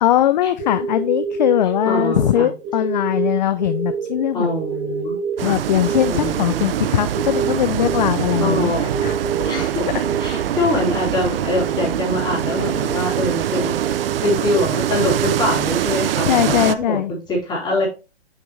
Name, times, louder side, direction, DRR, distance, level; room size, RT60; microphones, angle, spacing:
voice 1, 0.0-4.5 5.4-8.7 9.0-9.2 9.8-9.9 16.2-17.1, left 12 dB, 40° left, 13 dB, 0.4 m, -20 dB
sound 1, 0.6-16.3, right 6 dB, 25° right, 1.4 m, -29 dB
voice 2, 1.8-2.5 4.3-5.6 6.1-6.7 8.4-8.8 9.4-9.8 10.2-17.9, left 1 dB, 15° left, -3 dB, 3.0 m, -24 dB
sound 2, 5.4-16.8, right 11 dB, 55° right, 0.5 m, -23 dB
6.4 x 5.8 x 3.2 m, 0.30 s
hypercardioid pair, 140°, 34 cm